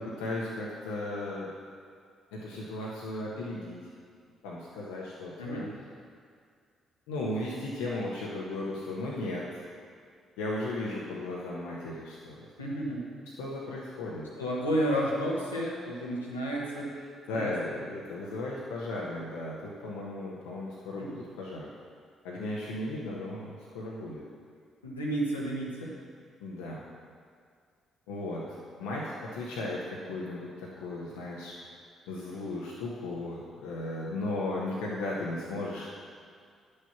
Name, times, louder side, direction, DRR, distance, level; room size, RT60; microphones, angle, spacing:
voice 1, 0.0-1.5 2.3-3.8 4.4-5.7 7.1-9.6 10.4-12.5 13.4-14.3 17.3-21.7 22.2-24.2 26.4-26.8 28.1-31.5 32.1-35.9, left 2 dB, 70° left, -4 dB, 1.1 m, -36 dB
voice 2, 5.4-5.7 12.6-13.0 14.4-16.9 17.3-17.6 21.0-21.2 24.8-25.9, equal, 85° left, -5 dB, 1.4 m, -31 dB
9.9 x 6.6 x 5.9 m, 2.2 s
figure-of-eight pair, 40°, 0 cm